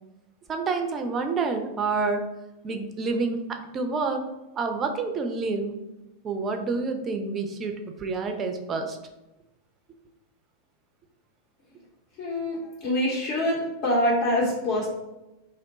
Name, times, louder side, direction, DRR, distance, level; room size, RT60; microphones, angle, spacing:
voice 1, 0.5-2.3 2.6-5.7 6.2-9.0, right 4 dB, 25° right, 5 dB, 0.4 m, -28 dB
voice 2, 12.2-14.9, left 1 dB, 45° left, -5 dB, 0.8 m, -25 dB
2.8 x 2.1 x 3.9 m, 0.99 s
figure-of-eight pair, 90°, 0 cm